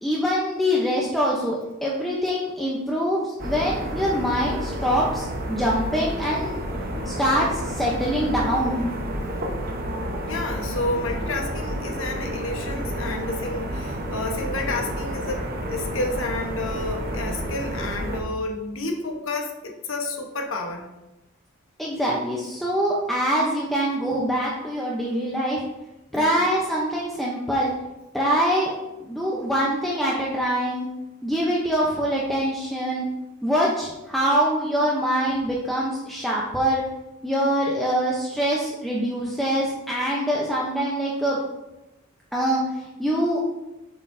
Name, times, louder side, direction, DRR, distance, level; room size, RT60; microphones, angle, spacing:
voice 1, 0.0-6.6 7.1-8.9 21.8-25.6 26.1-27.7 28.1-28.7 29.0-30.9 31.2-33.1 33.4-36.8 37.2-41.4 42.3-43.4, equal, ahead, -5 dB, 0.7 m, -24 dB
sound 1, 3.4-18.2, equal, 45° right, 1.0 m, -30 dB
voice 2, 10.2-20.8 26.1-26.4, left 2 dB, 70° left, 3 dB, 1.1 m, -30 dB
7.4 x 6.3 x 2.7 m, 0.96 s
head